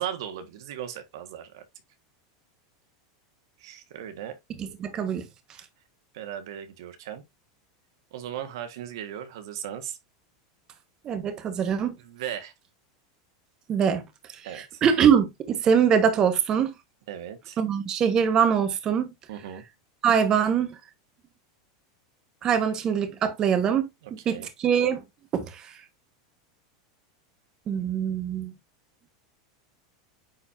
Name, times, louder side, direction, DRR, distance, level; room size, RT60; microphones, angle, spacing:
voice 1, 0.0-1.6 3.6-4.3 6.1-7.2 8.1-10.0 12.0-12.5 14.4-14.8 17.1-17.6 19.3-19.6 24.0-24.5, right 10 dB, 75° right, 1.5 m, -37 dB
voice 2, 4.6-5.3 11.0-11.9 13.7-16.7 17.6-19.1 20.0-20.8 22.4-23.9 24.2-25.0 25.3-25.8 27.7-28.5, right 7 dB, 30° right, 1.3 m, -23 dB
9.6 x 4.4 x 2.6 m
supercardioid pair, 130°, 2 cm